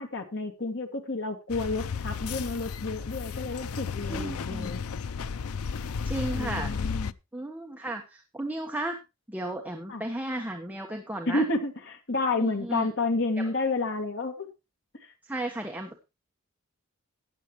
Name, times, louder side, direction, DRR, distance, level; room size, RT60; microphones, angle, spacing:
voice 1, 0.0-4.8 6.3-7.1 9.9-10.0 11.3-14.5, left 3 dB, 60° left, 4 dB, 2.2 m, -30 dB
sound 1, 1.5-7.1, left 5 dB, 90° left, 0.5 m, -33 dB
voice 2, 4.1-4.8 6.0-6.7 7.3-9.0 9.3-11.4 12.4-12.9 13.4-13.5 15.2-16.0, right 1 dB, 10° right, 2 dB, 1.2 m, -34 dB
15.5 x 10.0 x 3.1 m, 0.26 s
head